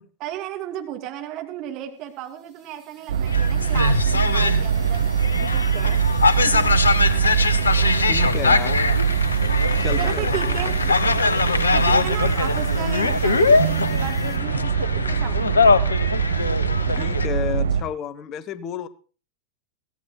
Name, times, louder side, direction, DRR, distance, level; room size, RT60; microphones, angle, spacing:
voice 1, 0.2-5.1 5.5-6.0 6.4-6.7 8.4-8.5 10.0-10.8 11.7-15.8 16.9-17.1, right 12 dB, 40° right, 5 dB, 2.2 m, -34 dB
sound 1, 1.9-14.4, right 3 dB, 5° right, 4.8 m, -49 dB
sound 2, 3.1-17.8, right 7 dB, 65° right, 1.0 m, -23 dB
sound 3, 3.3-17.3, left 4 dB, 75° left, 0.8 m, -22 dB
voice 2, 8.1-8.8 9.8-11.1 12.6-13.0 17.0-18.9, left 9 dB, 35° left, 16 dB, 0.8 m, -32 dB
23.0 x 16.0 x 2.2 m, 0.37 s
figure-of-eight pair, 90°, 0 cm